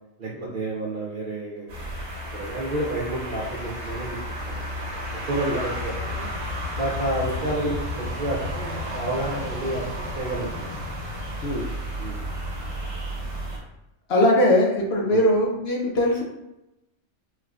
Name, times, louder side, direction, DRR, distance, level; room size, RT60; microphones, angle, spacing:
voice 1, 0.2-1.7 2.3-4.2 4.5-4.6 5.3-6.3 6.8-9.9 10.2-10.8 12.0-12.2 15.0-15.3, right 1 dB, 60° right, -4 dB, 0.6 m, -30 dB
sound 1, 1.7-13.6, equal, 85° right, 1.6 m, -32 dB
voice 2, 14.1-16.2, left 1 dB, 60° left, -1 dB, 0.7 m, -21 dB
4.5 x 2.2 x 2.3 m, 0.91 s
omnidirectional pair, 1.4 m